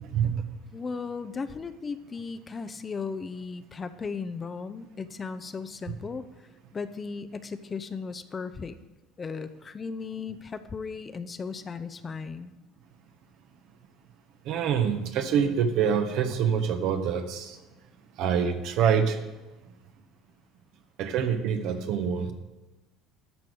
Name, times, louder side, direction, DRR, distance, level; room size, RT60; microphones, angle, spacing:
voice 1, 0.7-6.3 6.7-8.8 9.2-12.5, left 5 dB, 30° left, 12 dB, 0.7 m, -36 dB
voice 2, 14.5-17.5 18.2-19.2 21.0-22.3, right 7 dB, 65° right, 7 dB, 1.2 m, -25 dB
12.5 x 5.2 x 6.4 m, 1.1 s
hypercardioid pair, 70°, 0 cm